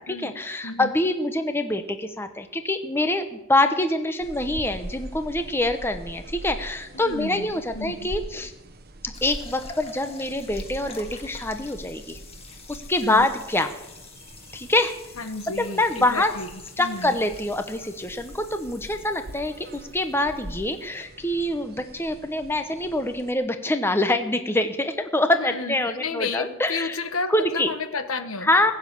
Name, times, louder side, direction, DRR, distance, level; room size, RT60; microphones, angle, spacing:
voice 1, 0.0-8.5 9.0-12.2 12.7-13.7 14.5-14.9 15.6-16.3 16.8-27.0 27.3-27.7 28.4-28.7, left 1 dB, 10° left, 7 dB, 0.9 m, -25 dB
sound 1, 4.2-23.3, right 1 dB, 45° right, 1.1 m, -42 dB
voice 2, 6.9-8.1 13.0-13.3 15.2-16.5 16.8-17.2 25.4-28.7, left 4 dB, 80° left, 8 dB, 1.3 m, -32 dB
sound 2, 9.1-21.1, left 4 dB, 30° left, 1.7 m, -47 dB
20.0 x 7.3 x 8.3 m, 0.94 s
head